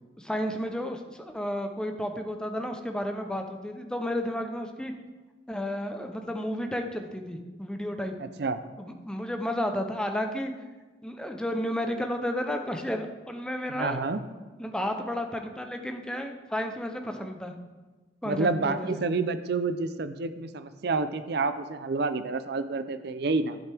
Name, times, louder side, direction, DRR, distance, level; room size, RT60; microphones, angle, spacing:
voice 1, 0.2-4.9 5.5-8.1 8.8-10.5 11.0-14.0 14.6-17.5 18.2-19.0, left 1 dB, 5° left, 5 dB, 0.7 m, -32 dB
voice 2, 8.2-8.6 13.7-14.2 18.2-23.6, right 3 dB, 60° right, 11 dB, 0.5 m, -29 dB
11.5 x 8.7 x 3.5 m, 1.3 s
head